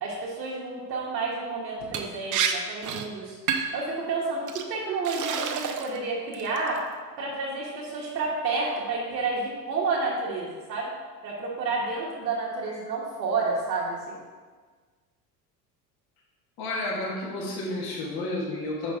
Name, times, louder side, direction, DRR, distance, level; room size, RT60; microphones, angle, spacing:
voice 1, 0.0-3.4 3.7-6.8 7.2-10.9 11.2-14.1, right 3 dB, 75° right, -5 dB, 1.3 m, -30 dB
Liquid, 1.9-2.1 2.3-2.5 2.8-3.1 3.5-3.8 4.5-4.6 5.0-6.0 6.3-6.8, right 7 dB, 40° right, 0.7 m, -28 dB
voice 2, 16.6-18.9, left 2 dB, 45° left, -3 dB, 1.7 m, -31 dB
6.2 x 5.4 x 3.6 m, 1.5 s
hypercardioid pair, 70°, 50 cm